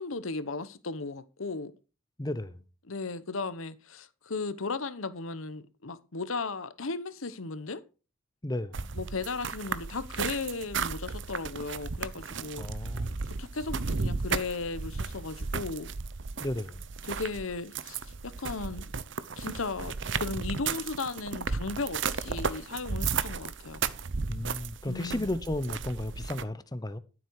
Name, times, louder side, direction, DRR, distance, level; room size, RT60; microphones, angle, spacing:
voice 1, 0.0-1.7 2.9-7.8 8.9-12.7 13.2-15.9 17.1-18.9 19.4-23.8 24.9-25.3, left 3 dB, 80° left, 1.0 m, -36 dB
voice 2, 2.2-2.6 8.4-8.9 12.6-13.2 16.4-16.8 24.3-27.0, left 1 dB, 20° left, 0.7 m, -34 dB
sound 1, 8.7-26.4, right 5 dB, 60° right, 0.8 m, -34 dB
13.0 x 7.6 x 4.7 m
head